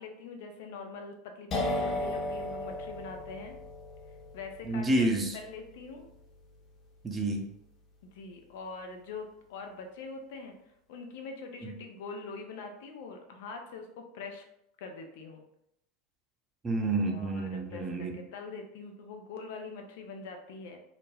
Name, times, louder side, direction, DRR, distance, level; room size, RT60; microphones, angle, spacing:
voice 1, 0.0-3.5 4.3-4.9 5.3-6.1 8.0-10.5 10.9-14.4 14.8-15.4 17.1-20.8, left 4 dB, 65° left, 4 dB, 0.4 m, -43 dB
sound 1, 1.5-9.1, left 1 dB, 40° left, 0.8 m, -38 dB
voice 2, 4.6-5.4 7.0-7.5 11.6-11.7 16.6-18.2, right 2 dB, 25° right, 1 dB, 0.6 m, -29 dB
2.4 x 2.1 x 3.2 m, 0.77 s
hypercardioid pair, 80°, 0 cm